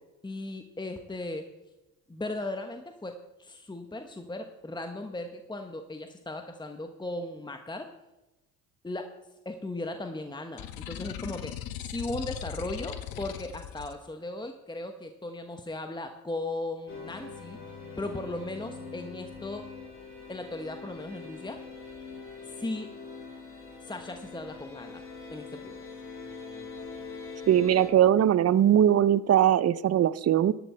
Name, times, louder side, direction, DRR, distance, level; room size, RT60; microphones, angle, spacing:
voice 1, 0.2-1.4 2.1-7.9 8.8-9.1 9.4-11.5 11.8-17.6 18.0-19.6 20.3-21.6 22.5-22.9 23.8-25.0 25.3-25.8, left 2 dB, 10° left, 6 dB, 1.2 m, -37 dB
sound 1, 10.6-13.9, left 10 dB, 70° left, 1.0 m, -39 dB
sound 2, 16.9-27.9, left 4 dB, 35° left, 3.8 m, -43 dB
voice 2, 27.5-30.5, right 10 dB, 40° right, 18 dB, 0.7 m, -21 dB
14.0 x 11.5 x 4.4 m, 1.0 s
supercardioid pair, 70°, 37 cm